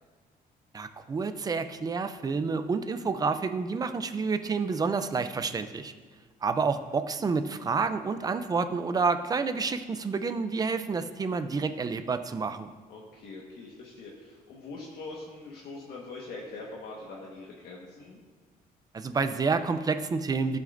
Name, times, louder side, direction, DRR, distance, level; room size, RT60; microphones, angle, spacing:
voice 1, 0.7-5.9 6.4-12.7 18.9-20.6, right 4 dB, 25° right, 9 dB, 0.5 m, -29 dB
voice 2, 12.9-18.2, left 3 dB, 80° left, -3 dB, 1.5 m, -43 dB
15.0 x 7.6 x 2.6 m, 1.5 s
cardioid pair, 145°, 16 cm